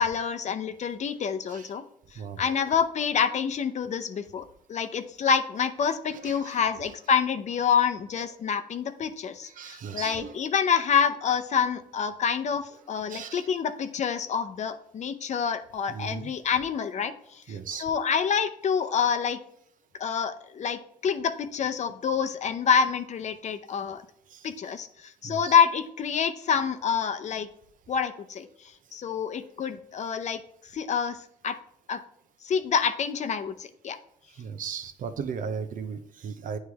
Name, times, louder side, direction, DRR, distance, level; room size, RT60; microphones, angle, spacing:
voice 1, 0.0-1.8 2.1-4.4 4.7-19.4 20.0-24.0 24.4-27.5 27.9-30.4 30.7-31.2 31.4-31.6 31.9-32.0 32.4-34.0, left 6 dB, 50° left, 9 dB, 0.6 m, -27 dB
voice 2, 6.1-6.6 9.4-10.3 13.1-13.5 15.9-16.3 17.5-17.9 24.3-24.5 25.2-25.5 29.4-29.5 34.3-36.6, right 6 dB, 65° right, 9 dB, 0.7 m, -37 dB
9.4 x 3.2 x 3.5 m, 0.69 s
cardioid pair, 95°, 15 cm